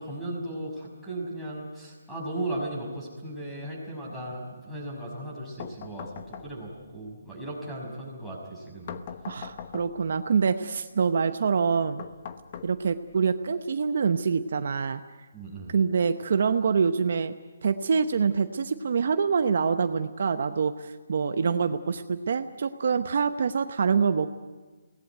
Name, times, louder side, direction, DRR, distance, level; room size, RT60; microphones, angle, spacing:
voice 1, 0.0-9.0 15.3-15.8, right 1 dB, 5° left, -4 dB, 5.9 m, -36 dB
sound 1, 5.6-6.9 8.9-10.2 12.0-13.2, left 7 dB, 35° left, 1.1 m, -41 dB
voice 2, 9.3-12.0 12.6-15.0 15.7-17.3 17.6-24.3, right 5 dB, 55° right, 9 dB, 0.9 m, -25 dB
23.0 x 18.5 x 9.3 m, 1.3 s
hypercardioid pair, 165°, 0 cm